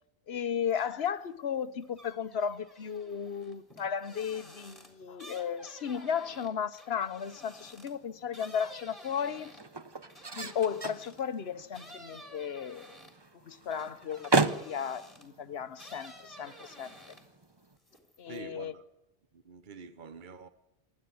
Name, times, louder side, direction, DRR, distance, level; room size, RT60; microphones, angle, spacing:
voice 1, 0.3-9.6 10.3-12.9 13.3-17.1 18.2-18.8, left 7 dB, 75° left, 1.2 m, -35 dB
sound 1, 0.7-1.2 1.6-11.3 11.7-15.4 15.7-17.4 17.8-18.4, equal, 20° left, 3.6 m, -52 dB
sound 2, 7.4-17.8, right 3 dB, 25° right, 0.9 m, -36 dB
voice 2, 18.3-18.8 19.3-20.5, right 5 dB, 50° right, 1.2 m, -46 dB
26.0 x 12.0 x 9.4 m
omnidirectional pair, 1.1 m